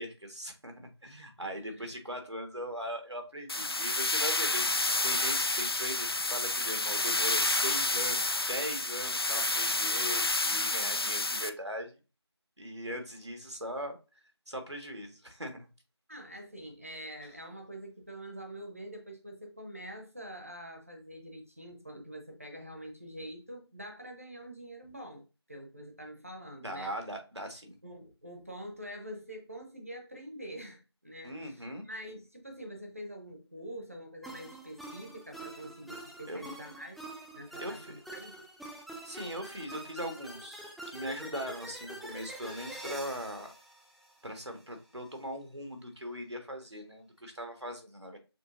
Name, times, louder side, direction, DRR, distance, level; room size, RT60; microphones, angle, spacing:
voice 1, 0.0-4.7 5.0-12.0 12.6-14.0 14.5-15.7 26.6-27.8 31.2-31.8 36.3-36.4 37.6-38.0 39.0-43.5 44.2-48.2, equal, 85° right, 1.8 m, -40 dB
voice 2, 1.4-1.9 16.1-26.9 27.8-37.0 37.3-38.4, equal, 30° right, 1.0 m, -45 dB
sound 1, 3.5-11.5, left 2 dB, 60° left, 0.4 m, -29 dB
sound 2, 34.2-44.6, right 1 dB, ahead, 0.3 m, -46 dB
6.4 x 2.9 x 2.6 m
figure-of-eight pair, 175°, 14 cm